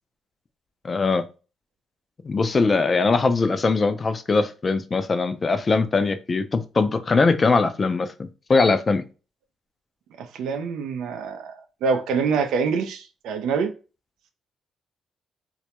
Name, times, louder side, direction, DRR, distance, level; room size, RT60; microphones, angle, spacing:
voice 1, 0.8-1.2 2.2-9.0, left 4 dB, 35° left, 0.3 m, -21 dB
voice 2, 10.2-13.7, right 5 dB, 85° right, 0.4 m, -25 dB
2.2 x 2.0 x 2.8 m
cardioid pair, 90°, 0 cm